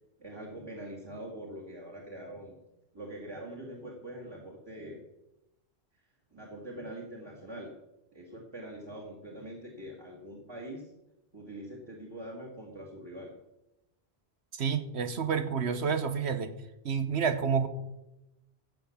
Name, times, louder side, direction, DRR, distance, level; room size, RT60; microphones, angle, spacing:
voice 1, 0.2-2.6 2.9-5.0 5.9-6.0 6.3-7.7 8.1-10.9 11.3-13.3, right 1 dB, 25° right, -2 dB, 2.0 m, -43 dB
voice 2, 14.5-16.5 16.8-17.7, right 6 dB, 85° right, 9 dB, 1.3 m, -29 dB
15.0 x 5.9 x 7.2 m, 0.92 s
omnidirectional pair, 1.1 m